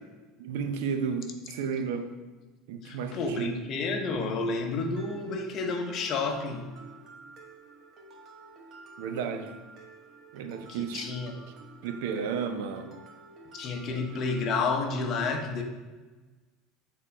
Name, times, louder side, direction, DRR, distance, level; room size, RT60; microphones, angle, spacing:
voice 1, 0.4-2.1 2.7-3.5 9.0-9.6 10.3-11.1 11.8-13.0 13.8-14.0, right 6 dB, 80° right, 7 dB, 0.6 m, -33 dB
voice 2, 2.8-6.7 10.7-11.4 13.5-15.6, left 3 dB, 40° left, 4 dB, 0.8 m, -30 dB
Mallet percussion, 5.0-14.5, right 3 dB, 40° right, 1.1 m, -51 dB
6.7 x 3.8 x 4.3 m, 1.3 s
supercardioid pair, 140°, 0 cm